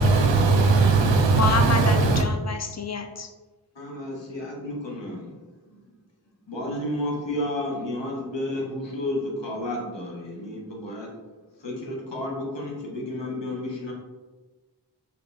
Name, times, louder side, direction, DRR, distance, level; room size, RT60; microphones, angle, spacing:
voice 1, 0.0-2.2, right 3 dB, 90° right, 5 dB, 0.6 m, -19 dB
voice 2, 1.4-3.3, left 4 dB, 40° left, 5 dB, 0.5 m, -28 dB
voice 3, 3.7-5.3 6.5-11.1 11.6-13.9, left 1 dB, 85° left, -1 dB, 1.0 m, -31 dB
4.0 x 2.8 x 3.3 m, 1.2 s
wide cardioid pair, 45°, 43 cm